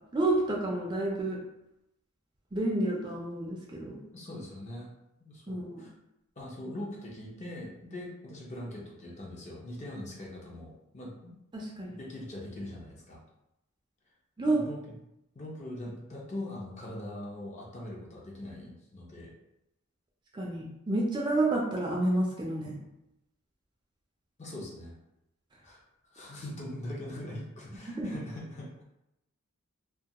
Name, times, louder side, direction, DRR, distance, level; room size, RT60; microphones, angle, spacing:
voice 1, 0.1-1.4 2.5-4.0 5.5-5.9 11.5-12.0 14.4-14.6 20.3-22.8 28.0-28.2, right 2 dB, 20° right, -3 dB, 0.3 m, -29 dB
voice 2, 4.1-4.9 5.2-5.9 6.4-11.4 12.0-13.2 14.5-14.8 15.3-19.3 24.4-24.9 25.6-25.8 26.1-28.8, left 1 dB, 35° left, -3 dB, 0.5 m, -41 dB
2.2 x 2.2 x 2.8 m, 0.86 s
head